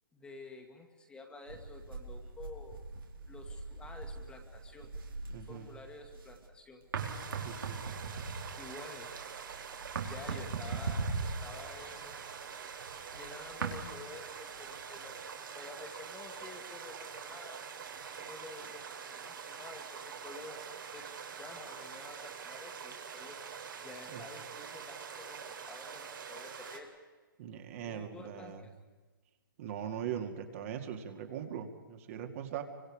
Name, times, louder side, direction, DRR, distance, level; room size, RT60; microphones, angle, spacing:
voice 1, 0.1-2.8 3.3-4.9 5.4-6.8 8.6-9.1 10.1-12.2 13.1-17.6 18.2-18.8 19.1-23.4 23.8-26.9 27.9-28.5, left 3 dB, 10° left, 3 dB, 1.9 m, -50 dB
sound 1, 1.5-6.5 6.8-13.8, right 4 dB, 85° right, 4.1 m, -40 dB
voice 2, 5.3-5.7 7.4-7.8 24.1-24.2 27.4-28.6 29.6-32.6, right 9 dB, 40° right, 4 dB, 2.4 m, -40 dB
sound 2, 7.0-26.8, right 7 dB, 70° right, 3.7 m, -45 dB
29.0 x 25.0 x 5.1 m, 1.3 s
hypercardioid pair, 150°, 11 cm